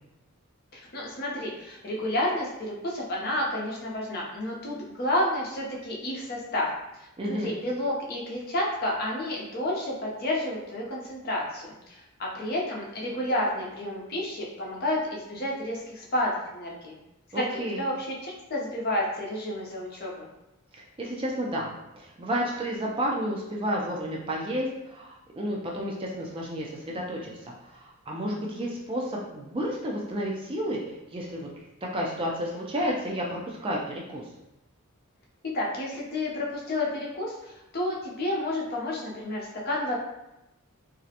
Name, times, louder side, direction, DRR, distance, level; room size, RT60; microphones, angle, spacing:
voice 1, 0.7-6.7 7.3-17.0 17.3-20.3 35.4-39.9, left 1 dB, 45° left, -3 dB, 0.5 m, -30 dB
voice 2, 7.2-7.5 17.3-17.8 20.7-31.5 31.8-34.2, equal, 25° right, -2 dB, 0.3 m, -31 dB
2.4 x 2.0 x 2.7 m, 0.91 s
head